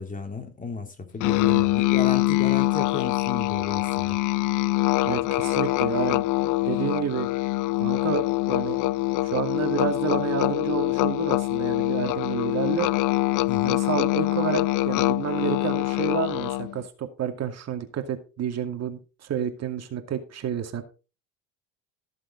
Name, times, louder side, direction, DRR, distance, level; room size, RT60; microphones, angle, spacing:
voice 1, 0.0-4.2 13.5-13.8, left 4 dB, 20° left, 3.2 m, -34 dB
Musical instrument, 1.2-16.8, left 19 dB, 55° left, 0.6 m, -24 dB
voice 2, 5.0-6.2 6.6-7.3 7.8-8.8 9.2-12.9 13.6-20.8, right 8 dB, 45° right, 2.3 m, -30 dB
14.5 x 7.5 x 4.0 m
supercardioid pair, 85°, 36 cm